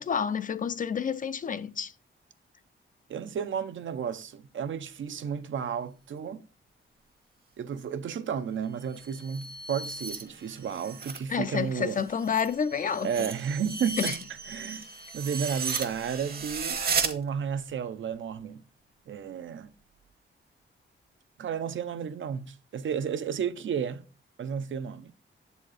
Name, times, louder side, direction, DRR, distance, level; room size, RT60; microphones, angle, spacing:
voice 1, 0.0-1.9 11.3-13.3 14.0-14.1, left 7 dB, 40° left, 0.4 m, -29 dB
voice 2, 3.1-6.4 7.6-12.0 13.0-14.2 14.5-14.8 15.1-18.6 19.1-19.7 21.4-24.0 24.4-25.1, right 7 dB, 65° right, 0.6 m, -32 dB
sound 1, 8.8-11.2 11.6-17.1, right 5 dB, 45° right, 1.0 m, -35 dB
7.7 x 4.2 x 4.8 m
wide cardioid pair, 155°, 21 cm